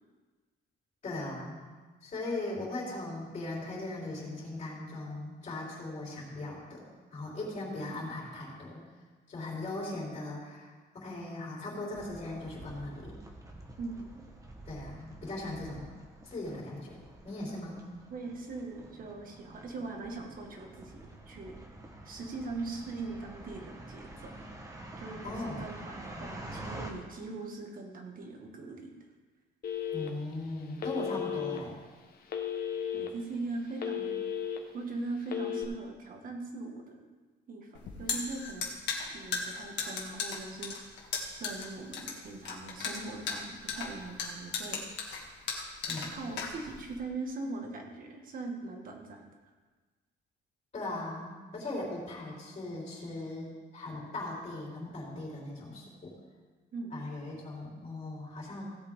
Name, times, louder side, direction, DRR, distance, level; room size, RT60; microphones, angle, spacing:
voice 1, 1.0-1.6 2.0-6.8 7.1-8.8 9.3-13.2 14.7-15.9 16.2-17.8 25.2-25.6 26.1-26.2 29.9-31.8 45.9-46.1 50.7-56.1 56.9-58.7, left 2 dB, 35° left, -6 dB, 4.0 m, -39 dB
sound 1, 11.9-26.9, right 1 dB, 15° right, 1.3 m, -48 dB
voice 2, 13.8-14.1 18.1-20.9 21.3-21.6 22.1-24.3 25.0-28.9 32.9-34.2 34.7-37.1 37.5-37.7 38.0-38.7 39.1-40.8 41.4-44.8 46.1-49.3 56.7-57.0, right 3 dB, 45° right, 2 dB, 1.8 m, -40 dB
Telephone, 29.6-30.3 30.8-31.6 32.3-33.1 33.5-34.6 35.2-35.6, left 8 dB, 50° left, 1.2 m, -34 dB
sound 2, 37.7-47.0, left 5 dB, 65° left, 2.0 m, -36 dB
16.5 x 8.1 x 3.7 m, 1.4 s
cardioid pair, 145°, 19 cm